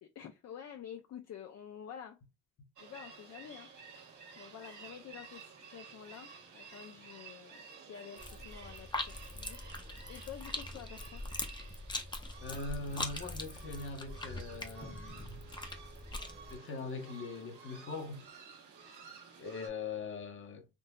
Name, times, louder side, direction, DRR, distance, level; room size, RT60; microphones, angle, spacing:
voice 1, 0.0-2.2 2.8-3.7 4.4-9.6 10.1-11.2, left 9 dB, 60° left, 0.5 m, -49 dB
sound 1, 2.8-19.7, right 5 dB, 75° right, 1.3 m, -53 dB
sound 2, 8.2-16.6, left 2 dB, 15° left, 0.6 m, -42 dB
voice 2, 12.4-15.4 16.5-18.2 18.8-19.0 19.4-20.7, left 4 dB, 40° left, 0.9 m, -42 dB
Wind instrument woodwind instrument, 13.6-18.1, right 14 dB, 40° right, 1.1 m, -61 dB
3.8 x 2.6 x 2.3 m
cardioid pair, 90°, 30 cm